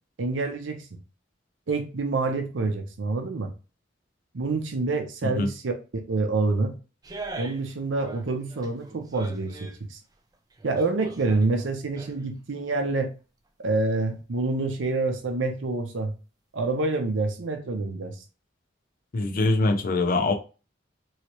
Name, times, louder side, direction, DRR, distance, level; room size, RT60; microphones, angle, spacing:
voice 1, 0.2-0.9 1.7-3.5 4.3-6.7 7.4-10.0 10.6-13.1 13.6-16.1 16.5-18.2, right 3 dB, 80° right, 0.6 m, -27 dB
sound 1, 7.0-7.7 8.0-9.8 10.3-12.4 12.7-12.8, right 2 dB, 20° right, 0.4 m, -42 dB
voice 2, 19.1-20.3, left 2 dB, 50° left, 0.5 m, -23 dB
3.1 x 2.8 x 2.9 m
head